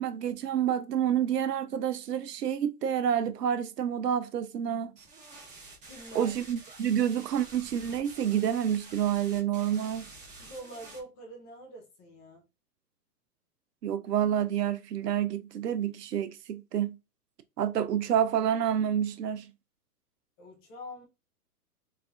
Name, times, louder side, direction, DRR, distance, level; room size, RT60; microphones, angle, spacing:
voice 1, 0.0-4.9 6.1-10.1 13.8-17.0 17.6-19.5, right 9 dB, 90° right, 0.6 m, -28 dB
sound 1, 5.0-11.0, right 3 dB, 15° right, 1.0 m, -49 dB
voice 2, 5.8-6.3 10.4-12.4 20.4-21.1, equal, 10° left, 0.4 m, -45 dB
3.3 x 2.5 x 3.4 m
hypercardioid pair, 130°, 47 cm